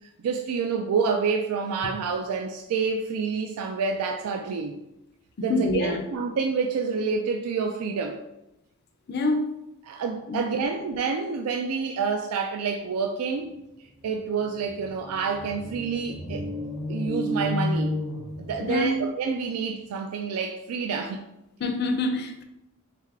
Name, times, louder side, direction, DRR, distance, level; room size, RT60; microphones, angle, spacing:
voice 1, 0.2-4.8 5.4-8.2 9.8-13.5 14.0-16.4 16.9-18.0 18.4-21.2, right 5 dB, 85° right, 4 dB, 0.3 m, -28 dB
voice 2, 5.4-6.0 9.1-9.5 10.3-10.6 18.6-19.0 21.6-22.4, left 2 dB, 45° left, 5 dB, 0.4 m, -26 dB
sound 1, 13.6-13.7 13.9-19.0, left 1 dB, 25° right, 0.5 m, -32 dB
3.4 x 3.2 x 3.5 m, 0.89 s
head